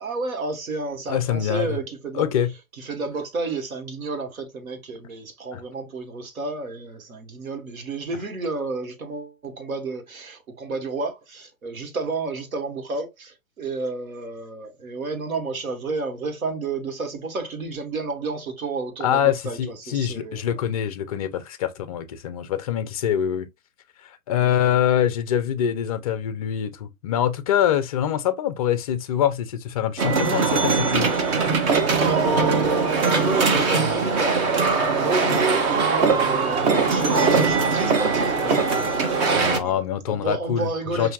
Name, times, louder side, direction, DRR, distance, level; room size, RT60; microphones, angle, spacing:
voice 1, 0.0-2.3 2.7-20.6 24.4-24.9 31.9-41.1, right 3 dB, 80° right, 1.4 m, -31 dB
voice 2, 1.1-1.8 2.1-2.5 5.5-5.6 19.0-23.5 24.3-31.1 39.3-41.1, left 10 dB, 30° left, 0.4 m, -24 dB
sound 1, 30.0-39.6, right 4 dB, 30° right, 0.8 m, -21 dB
5.5 x 2.6 x 2.3 m
hypercardioid pair, 125°, 41 cm